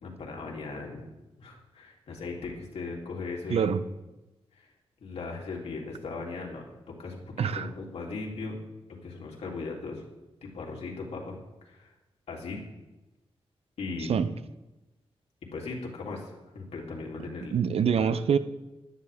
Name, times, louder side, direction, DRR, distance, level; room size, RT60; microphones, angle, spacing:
voice 1, 0.0-1.1 1.4-3.7 4.5-4.7 5.0-6.6 7.0-8.6 9.0-10.0 10.4-11.4 11.6-11.9 12.3-12.6 13.8-14.2 15.5-17.5 17.9-18.1, left 3 dB, 90° left, 3.2 m, -38 dB
voice 2, 3.5-3.8 7.4-7.7 14.0-14.3 17.5-18.4, right 7 dB, 75° right, 0.8 m, -25 dB
16.0 x 12.5 x 3.7 m
wide cardioid pair, 105°, 10 cm